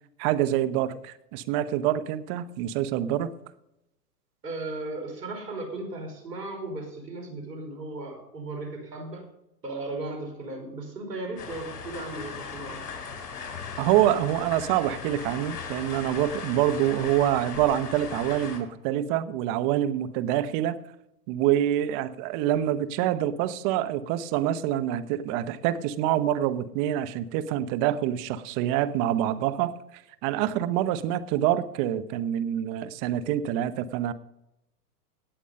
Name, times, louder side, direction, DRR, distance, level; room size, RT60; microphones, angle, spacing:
voice 1, 0.2-3.3 13.8-20.8 21.3-29.7 30.2-34.1, right 12 dB, 35° right, 14 dB, 0.9 m, -26 dB
voice 2, 4.4-9.3 9.6-12.8, right 2 dB, 90° right, 4 dB, 4.7 m, -36 dB
sound 1, 11.4-18.6, left 6 dB, 65° left, 4.6 m, -38 dB
17.5 x 7.1 x 5.4 m, 0.84 s
hypercardioid pair, 125°, 47 cm